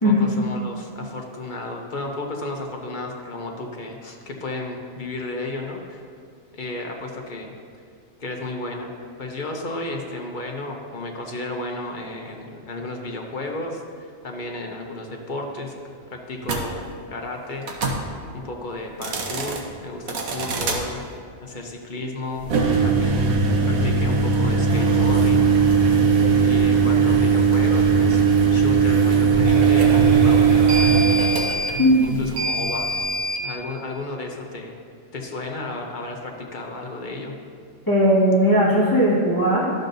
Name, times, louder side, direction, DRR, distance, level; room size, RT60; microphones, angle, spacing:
voice 1, 0.0-6.0 6.5-7.5 8.2-15.7 16.1-17.7 18.3-21.1 21.4-22.5 22.8-23.4 23.7-25.9 26.4-28.2 28.5-30.9 32.0-32.9 33.4-34.8 35.1-37.3, left 2 dB, 45° left, 1 dB, 0.8 m, -33 dB
sound 1, 16.4-16.6 17.6-18.0 18.9-19.6 20.1-20.8 22.4-33.4, right 5 dB, 80° right, 1.3 m, -19 dB
voice 2, 31.8-32.1 37.9-39.7, equal, 15° left, -8 dB, 1.4 m, -17 dB
11.5 x 6.5 x 2.6 m, 2.1 s
omnidirectional pair, 1.4 m